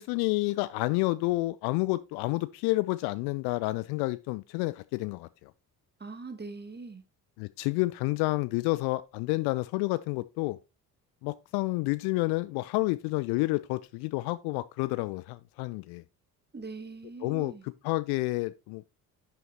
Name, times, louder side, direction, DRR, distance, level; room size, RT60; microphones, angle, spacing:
voice 1, 0.0-5.5 7.4-10.6 11.2-16.0 17.2-17.5 17.8-18.8, left 22 dB, 55° left, 0.5 m, -29 dB
voice 2, 6.0-7.0 16.5-17.6, right 4 dB, 20° right, 1.8 m, -41 dB
10.5 x 5.8 x 2.9 m
figure-of-eight pair, 45°, 48 cm